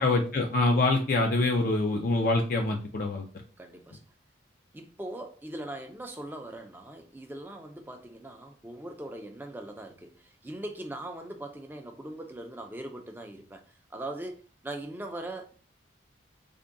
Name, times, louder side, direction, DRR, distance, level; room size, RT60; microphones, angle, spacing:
voice 1, 0.0-3.3, left 2 dB, 45° left, 0.4 m, -25 dB
voice 2, 3.6-4.0 4.7-13.6 13.9-15.5, right 1 dB, 10° right, 0.4 m, -40 dB
3.5 x 2.2 x 3.8 m
head